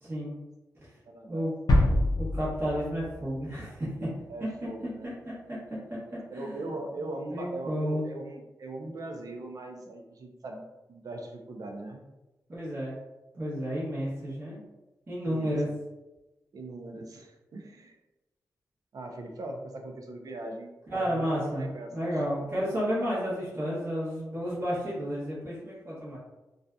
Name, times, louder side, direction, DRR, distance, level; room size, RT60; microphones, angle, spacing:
voice 1, 0.0-0.3 1.3-1.5 2.2-4.1 5.3-5.6 6.3-6.6 7.3-8.0 12.5-13.0 13.3-14.6 15.1-15.7 20.9-26.2, equal, 35° right, -9 dB, 0.9 m, -31 dB
voice 2, 1.1-1.5 4.3-5.1 6.3-10.6 10.9-12.0 15.3-15.5 16.5-18.0 18.9-22.1, right 2 dB, 60° right, 3 dB, 0.5 m, -40 dB
sound 1, 1.7-3.5 3.8-3.9, left 1 dB, 80° left, 0.4 m, -25 dB
2.6 x 2.3 x 2.3 m, 1.0 s
wide cardioid pair, 100°, 7 cm